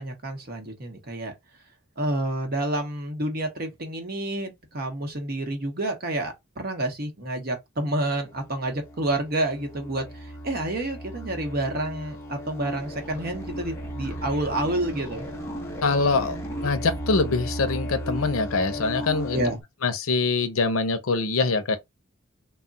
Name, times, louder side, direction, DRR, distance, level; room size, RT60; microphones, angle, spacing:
voice 1, 0.0-1.3 2.0-15.2 19.3-19.6, right 1 dB, 45° right, 0.9 m, -29 dB
sound 1, 8.2-19.6, equal, 10° left, 0.8 m, -35 dB
voice 2, 15.8-16.4 16.6-19.4 19.8-21.8, left 4 dB, 90° left, 0.6 m, -24 dB
2.3 x 2.1 x 3.8 m
head